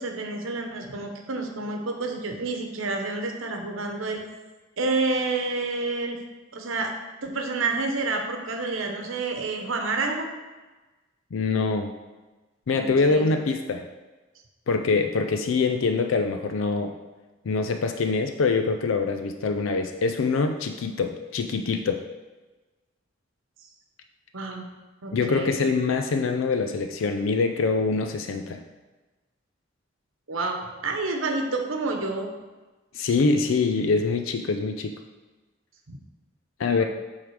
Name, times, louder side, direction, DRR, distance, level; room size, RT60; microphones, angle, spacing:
voice 1, 0.0-4.2 4.8-6.2 6.5-6.9 7.2-10.3 12.7-13.3 24.3-24.6 25.0-25.5 30.3-32.3 35.9-36.0 36.8-36.9, right 3 dB, 90° right, 3 dB, 1.0 m, -29 dB
voice 2, 11.3-11.9 12.7-13.9 14.7-16.9 17.5-22.0 25.1-28.6 32.9-34.9 36.6-36.8, left 4 dB, 85° left, 6 dB, 0.4 m, -24 dB
8.1 x 3.7 x 4.8 m, 1.2 s
head